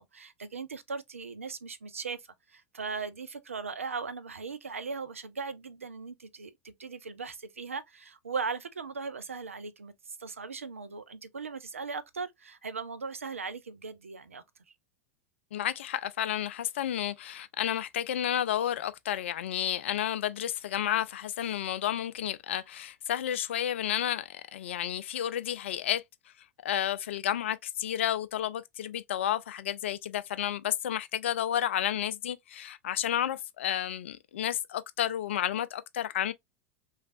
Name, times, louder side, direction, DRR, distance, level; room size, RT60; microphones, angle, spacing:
voice 1, 0.0-2.2 2.5-14.4, right 5 dB, 80° right, 0.4 m, -38 dB
voice 2, 15.5-26.0 26.6-36.3, left 11 dB, 65° left, 0.3 m, -31 dB
3.1 x 2.4 x 2.4 m
figure-of-eight pair, 85°, 7 cm